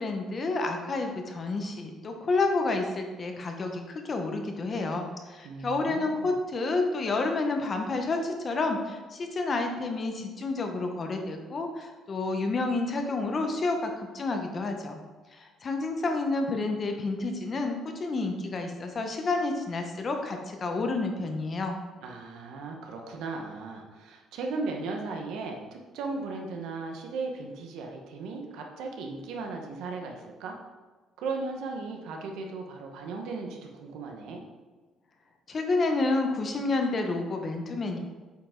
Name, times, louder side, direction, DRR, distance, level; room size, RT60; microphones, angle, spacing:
voice 1, 0.0-15.0 15.3-21.8 35.5-38.0, left 3 dB, 35° left, 4 dB, 1.0 m, -29 dB
voice 2, 5.4-6.3 22.0-30.6 31.2-34.4, right 3 dB, 85° right, 2 dB, 1.2 m, -36 dB
8.4 x 5.2 x 3.8 m, 1.3 s
cardioid pair, 135°, 0 cm